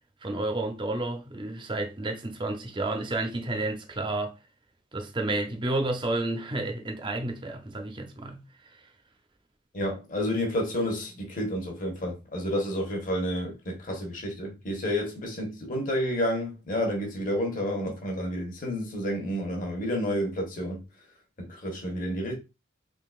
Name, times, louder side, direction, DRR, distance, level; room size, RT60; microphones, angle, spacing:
voice 1, 0.2-4.4 4.9-8.4 8.7-8.8, right 2 dB, 25° right, 0.6 m, -31 dB
voice 2, 9.7-20.8 21.4-22.3, equal, 45° left, 1.1 m, -30 dB
3.7 x 3.4 x 2.4 m
head